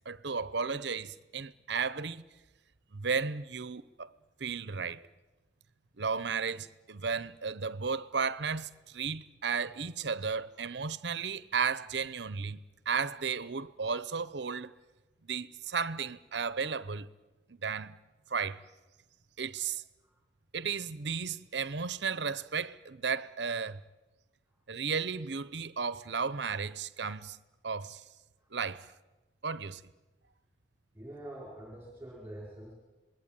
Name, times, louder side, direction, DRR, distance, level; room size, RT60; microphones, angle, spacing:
voice 1, 0.1-2.2 2.9-4.1 4.4-5.0 6.0-14.7 15.2-17.1 17.5-18.0 18.3-18.6 19.4-19.8 20.5-23.8 24.7-27.4 27.6-28.0 28.5-28.9 29.4-29.8, right 5 dB, 65° right, 0.9 m, -34 dB
voice 2, 30.9-32.7, right 1 dB, 10° right, 5.0 m, -46 dB
27.0 x 21.0 x 9.1 m
head